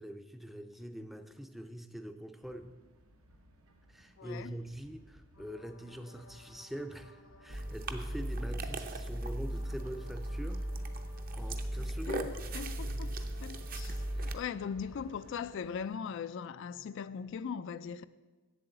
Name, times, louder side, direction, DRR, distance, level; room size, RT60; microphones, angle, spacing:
voice 1, 0.0-2.7 3.9-10.6 11.4-12.3 14.1-14.4, right 1 dB, ahead, 0.5 m, -44 dB
sound 1, 2.4-16.0, equal, 80° right, 1.1 m, -60 dB
voice 2, 4.2-4.5 11.8-18.1, left 6 dB, 60° left, 0.3 m, -40 dB
sound 2, 5.3-17.3, left 2 dB, 75° left, 1.1 m, -60 dB
sound 3, 7.5-14.3, right 1 dB, 40° right, 0.7 m, -37 dB
8.0 x 7.7 x 7.8 m
head